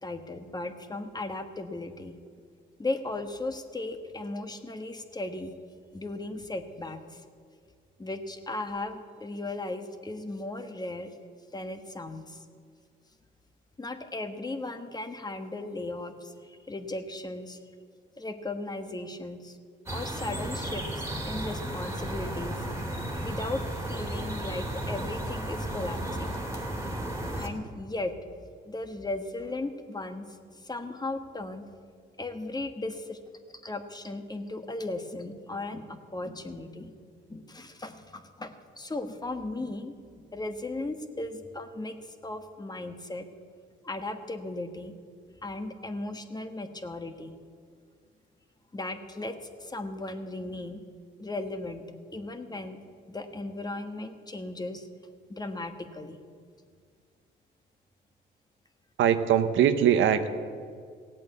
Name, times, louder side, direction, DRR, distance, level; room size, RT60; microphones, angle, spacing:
voice 1, 0.0-2.1 2.8-5.5 5.9-7.2 8.0-11.1 11.5-12.4 13.8-17.6 18.2-19.6 19.9-22.6 23.2-26.3 27.4-28.1 28.6-30.2 30.5-31.6 32.2-33.2 33.6-37.0 37.3-42.0 42.2-43.3 43.8-44.9 45.4-47.3 48.7-50.8 51.2-51.8 52.1-52.8 53.1-54.9 55.3-56.2, left 2 dB, 20° left, 7 dB, 1.4 m, -36 dB
sound 1, 19.9-27.5, right 1 dB, 15° right, 2.5 m, -34 dB
voice 2, 59.0-60.3, right 9 dB, 80° right, 9 dB, 1.0 m, -22 dB
16.5 x 8.5 x 8.3 m, 2.1 s
cardioid pair, 90°, 20 cm